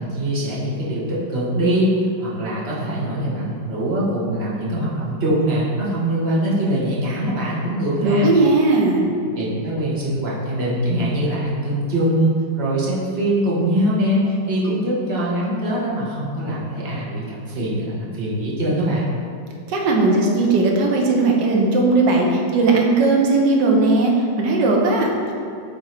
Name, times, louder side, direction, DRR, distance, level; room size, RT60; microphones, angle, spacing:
voice 1, 0.0-1.9 2.2-8.3 9.3-19.1, right 1 dB, 40° right, -6 dB, 0.9 m, -22 dB
voice 2, 8.0-9.1 19.7-25.3, right 3 dB, 65° right, 0 dB, 1.2 m, -17 dB
6.0 x 3.7 x 4.3 m, 2.5 s
omnidirectional pair, 2.4 m